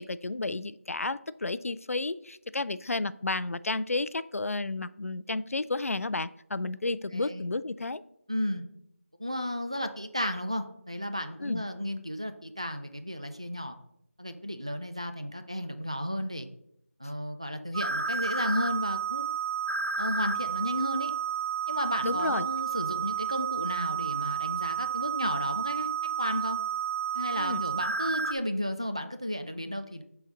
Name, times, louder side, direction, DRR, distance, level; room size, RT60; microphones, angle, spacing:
voice 1, 0.0-8.0 11.4-11.7 22.0-22.5 27.4-27.6, left 2 dB, 80° left, 16 dB, 0.4 m, -32 dB
voice 2, 7.1-7.4 8.3-8.6 9.2-13.8 14.2-16.5 17.0-19.3 20.0-21.1 21.7-25.9 26.2-26.6 27.1-30.0, equal, 25° right, 7 dB, 0.3 m, -33 dB
sound 1, 17.7-28.3, right 7 dB, 70° right, 0.7 m, -31 dB
6.7 x 4.0 x 5.0 m, 0.75 s
figure-of-eight pair, 175°, 8 cm